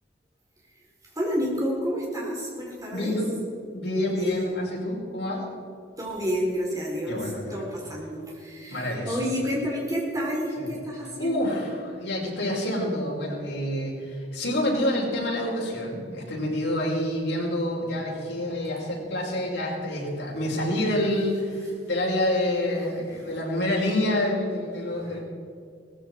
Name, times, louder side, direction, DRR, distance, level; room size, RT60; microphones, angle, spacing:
voice 1, 1.1-3.1 4.1-4.4 6.0-11.6 22.8-22.9 23.2-23.3 24.9-25.2, equal, 20° right, -3 dB, 4.4 m, -30 dB
voice 2, 2.9-3.3 3.7-5.4 7.1-7.6 8.7-9.2 10.6-10.7 11.2-25.2, left 1 dB, 80° left, -3 dB, 5.1 m, -27 dB
18.0 x 15.0 x 4.8 m, 2.3 s
head